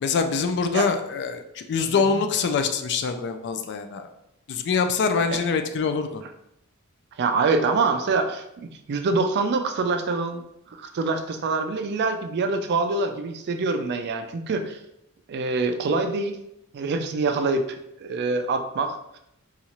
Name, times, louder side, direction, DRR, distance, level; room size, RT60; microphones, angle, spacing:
voice 1, 0.0-4.1 4.5-6.2, left 5 dB, 55° left, 7 dB, 0.3 m, -24 dB
voice 2, 7.2-10.4 10.7-14.8 15.3-16.4 16.7-17.6 18.0-19.2, right 3 dB, 50° right, 7 dB, 0.4 m, -25 dB
4.1 x 2.4 x 2.9 m, 0.81 s
head